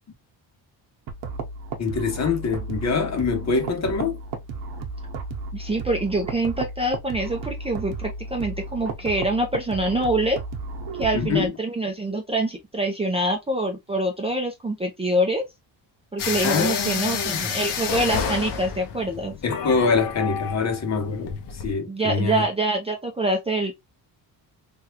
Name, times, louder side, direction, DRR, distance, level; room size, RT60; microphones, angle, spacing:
sound 1, 1.1-11.5, right 3 dB, 70° right, 0.9 m, -34 dB
voice 1, 1.8-4.2 11.1-11.5 16.4-17.5 19.4-21.4 21.6-22.5, left 5 dB, 35° left, 0.9 m, -24 dB
voice 2, 5.5-10.4 11.0-15.4 16.1-19.3 21.9-23.7, right 1 dB, 15° right, 0.5 m, -25 dB
sound 2, 16.2-21.7, left 6 dB, 65° left, 0.8 m, -29 dB
3.5 x 2.3 x 2.8 m
cardioid pair, 140°, 44 cm